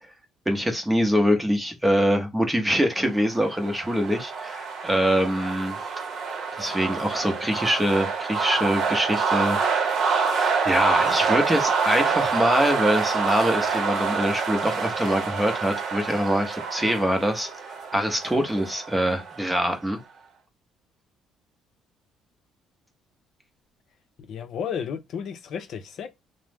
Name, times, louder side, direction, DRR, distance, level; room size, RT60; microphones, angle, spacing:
voice 1, 0.5-5.8 6.5-20.0, equal, 5° right, 0.7 m, -24 dB
sound 1, 3.1-19.8, right 5 dB, 55° right, 0.8 m, -27 dB
voice 2, 24.3-26.1, left 7 dB, 60° left, 0.5 m, -32 dB
3.0 x 2.0 x 3.4 m
cardioid pair, 120°, 0 cm